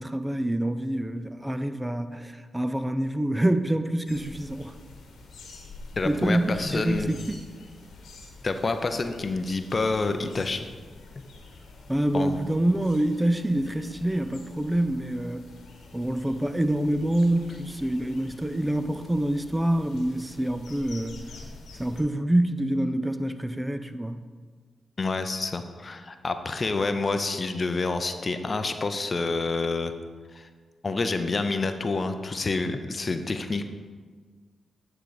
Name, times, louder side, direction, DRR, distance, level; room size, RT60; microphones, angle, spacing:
voice 1, 0.0-4.7 6.0-7.5 11.9-15.4 15.9-21.2 21.8-24.2, right 1 dB, 15° right, 10 dB, 0.5 m, -26 dB
sound 1, 4.1-22.0, left 3 dB, 75° left, 1.2 m, -47 dB
voice 2, 6.0-7.1 8.4-10.7 12.1-12.4 25.0-29.9 30.3-30.5 30.8-33.6, left 3 dB, 45° left, 8 dB, 0.6 m, -28 dB
9.0 x 3.8 x 4.8 m, 1.5 s
supercardioid pair, 40°, 0 cm